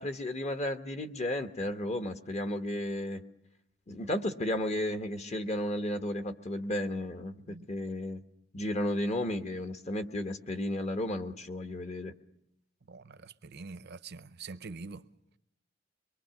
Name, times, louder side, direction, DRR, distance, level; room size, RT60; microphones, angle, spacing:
voice 1, 0.0-3.2 3.9-8.2 8.5-12.1, left 1 dB, 35° left, 1.1 m, -33 dB
voice 2, 12.9-15.1, right 4 dB, 55° right, 0.7 m, -45 dB
23.5 x 22.5 x 5.8 m
head